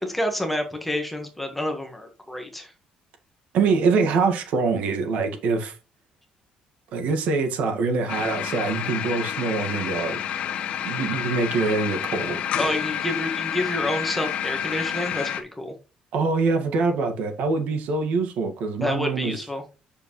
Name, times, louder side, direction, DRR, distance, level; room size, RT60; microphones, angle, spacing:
voice 1, 0.0-2.7 12.5-15.7 18.8-19.6, left 1 dB, 5° left, 1.6 m, -28 dB
voice 2, 3.5-5.8 6.9-10.2 10.8-12.4 16.1-19.4, right 4 dB, 70° right, 1.9 m, -24 dB
sound 1, 8.1-15.4, left 9 dB, 55° left, 1.1 m, -29 dB
8.3 x 6.8 x 3.2 m
cardioid pair, 170°, 2 cm